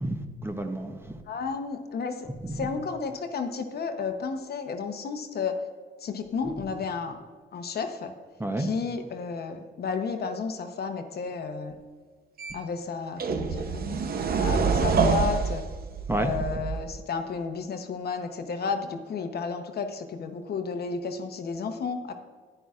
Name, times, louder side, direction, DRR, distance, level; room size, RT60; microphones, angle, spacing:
voice 1, 0.0-1.1 2.4-2.6 8.4-8.7 16.1-16.3, right 1 dB, 10° right, 5 dB, 0.7 m, -30 dB
voice 2, 1.3-5.6 6.0-7.2 7.5-8.1 8.6-11.8 12.5-14.0 14.4-15.6 16.2-22.1, left 5 dB, 55° left, 6 dB, 0.9 m, -32 dB
sound 1, 12.4-12.5 13.2-17.0, right 5 dB, 50° right, 0.7 m, -26 dB
10.0 x 10.0 x 2.4 m, 1.5 s
cardioid pair, 90°, 20 cm